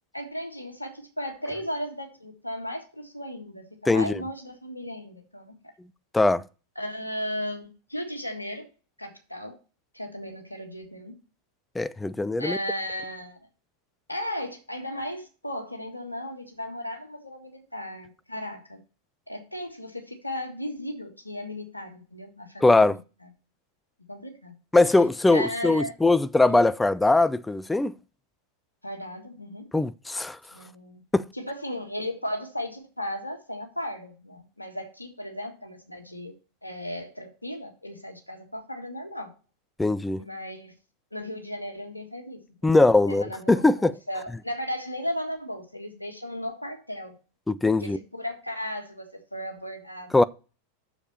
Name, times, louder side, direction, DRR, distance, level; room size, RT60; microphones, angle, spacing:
voice 1, 0.1-5.5 6.7-8.7 9.0-9.6 9.9-11.1 12.4-13.4 14.1-18.8 19.3-23.0 24.1-24.5 25.3-25.9 26.5-26.7 28.8-29.6 30.5-31.0 31.3-36.3 36.6-39.3 40.2-40.7 41.1-47.1 47.8-50.3, left 1 dB, 85° left, 1.6 m, -35 dB
voice 2, 3.9-4.2 6.1-6.4 11.8-12.6 22.6-23.0 24.7-27.9 29.7-30.4 31.1-31.2 39.8-40.2 42.6-43.9 47.5-48.0 50.1-50.2, left 2 dB, 10° left, 0.4 m, -21 dB
6.7 x 5.0 x 6.9 m
figure-of-eight pair, 90°, 0 cm